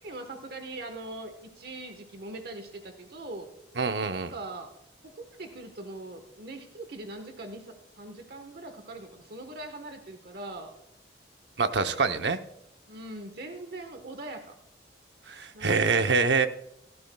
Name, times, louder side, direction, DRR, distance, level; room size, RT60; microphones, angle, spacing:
voice 1, 0.0-3.5 4.3-4.7 5.0-10.7 11.7-12.1 12.9-14.5 15.5-16.1, right 2 dB, 60° right, 6 dB, 1.2 m, -41 dB
voice 2, 3.8-4.3 11.6-12.4 15.3-16.5, right 4 dB, 75° right, 8 dB, 0.8 m, -25 dB
16.0 x 13.5 x 2.3 m, 0.78 s
head